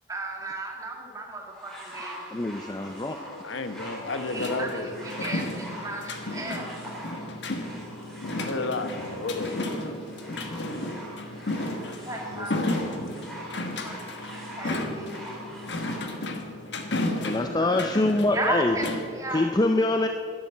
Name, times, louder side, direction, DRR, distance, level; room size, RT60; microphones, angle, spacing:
voice 1, 0.1-2.6 4.2-7.0 11.6-11.7 12.1-12.6 13.6-14.0 14.6-15.2 17.6-18.0 18.3-19.5, right 2 dB, 15° right, 0 dB, 1.9 m, -35 dB
sound 1, 1.5-16.1 17.0-17.1, right 1 dB, ahead, 3.4 m, -43 dB
voice 2, 2.3-3.2 17.2-18.8 19.3-20.1, left 2 dB, 20° left, 5 dB, 0.5 m, -24 dB
voice 3, 3.3-4.9 8.5-9.5 12.3-13.1, left 3 dB, 85° left, 8 dB, 1.0 m, -32 dB
sound 2, 4.4-19.1, left 1 dB, 65° left, 1.4 m, -33 dB
11.5 x 10.5 x 7.6 m, 2.4 s
head